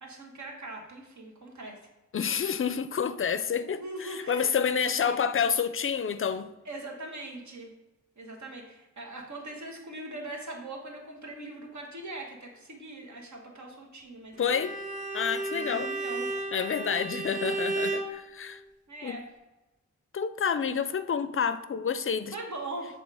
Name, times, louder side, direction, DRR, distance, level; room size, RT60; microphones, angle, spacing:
voice 1, 0.0-1.8 3.6-5.2 6.6-7.7 8.2-14.7 15.5-16.3 16.9-17.0 18.9-19.2 22.3-23.0, right 2 dB, 70° right, 1.3 m, -41 dB
voice 2, 2.1-6.5 14.4-14.8 15.1-15.9 16.5-18.6 19.0-19.2 20.1-22.3, left 7 dB, 45° left, 0.4 m, -29 dB
Bowed string instrument, 14.4-18.1, right 3 dB, 25° right, 1.2 m, -33 dB
7.2 x 2.8 x 4.8 m
wide cardioid pair, 95°, 30 cm